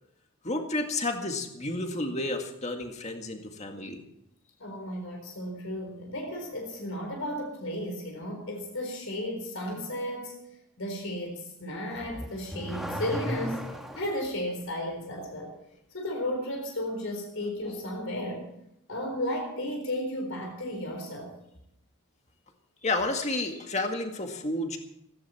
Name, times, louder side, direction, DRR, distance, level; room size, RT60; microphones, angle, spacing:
voice 1, 0.4-4.0 22.8-24.8, left 2 dB, 30° left, 4 dB, 1.9 m, -31 dB
voice 2, 4.6-10.4 10.8-13.6 13.9-15.5 15.9-18.5 18.9-21.3, left 1 dB, 70° left, 2 dB, 4.2 m, -34 dB
Car / Accelerating revving vroom, 12.0-14.2, equal, ahead, 1.4 m, -35 dB
17.0 x 15.5 x 4.4 m, 0.79 s
head